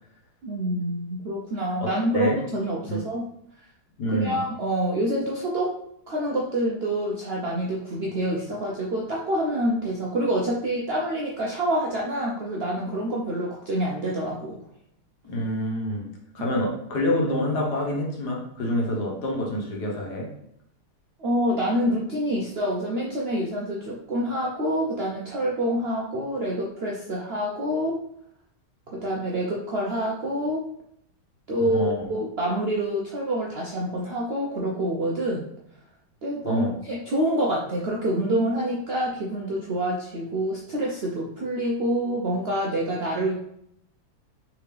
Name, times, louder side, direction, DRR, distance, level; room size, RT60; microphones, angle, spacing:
voice 1, 0.4-3.2 4.1-5.7 6.1-14.5 21.2-28.0 28.9-30.6 31.5-35.5 36.2-43.3, right 1 dB, 80° right, -3 dB, 0.5 m, -27 dB
voice 2, 1.8-2.3 2.9-3.0 4.0-4.4 15.2-16.0 16.3-20.3 31.6-31.9 36.4-36.7, left 1 dB, 70° left, -2 dB, 1.5 m, -27 dB
3.5 x 3.5 x 3.3 m, 0.73 s
omnidirectional pair, 1.8 m